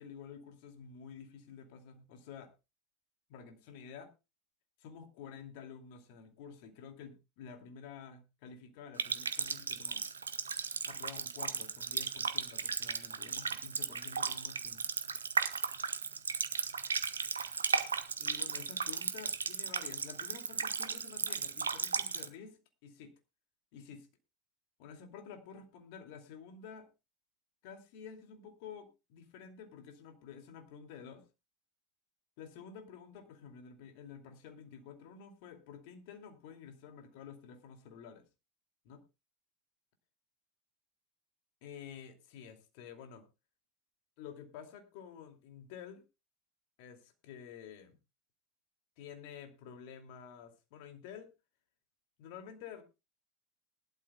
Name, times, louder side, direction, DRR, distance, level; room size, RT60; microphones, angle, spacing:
voice 1, 0.0-2.5 3.3-4.1 4.8-10.1 10.8-14.9 18.2-23.1 23.7-24.1 24.8-26.9 27.6-31.2 32.4-38.3 38.8-39.0 41.6-43.3 44.2-46.0 46.8-48.0 49.0-51.3 52.2-52.8, left 7 dB, 60° left, 6 dB, 2.5 m, -50 dB
Water tap faucet, 9.0-22.3, right 5 dB, 85° right, 1.0 m, -35 dB
20.0 x 12.0 x 2.3 m, 0.27 s
figure-of-eight pair, 80°, 0 cm